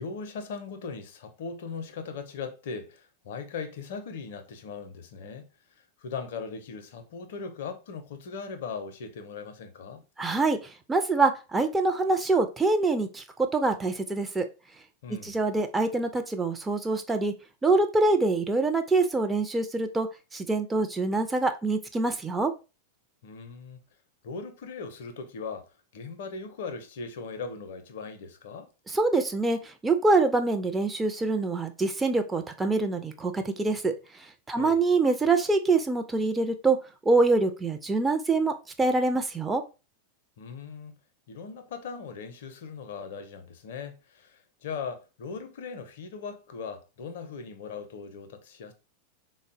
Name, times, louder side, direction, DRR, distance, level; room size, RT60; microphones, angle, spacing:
voice 1, 0.0-5.5 6.0-10.0 15.0-15.3 23.2-23.8 24.2-28.7 34.6-34.8 40.4-40.9 41.3-48.7, left 5 dB, 55° left, 0.5 m, -39 dB
voice 2, 10.2-10.6 10.9-14.5 15.1-17.3 17.6-20.1 20.3-22.5 28.9-33.9 34.5-36.8 37.1-39.6, right 3 dB, 10° right, 0.4 m, -25 dB
3.6 x 2.0 x 2.5 m
figure-of-eight pair, 90°, 0 cm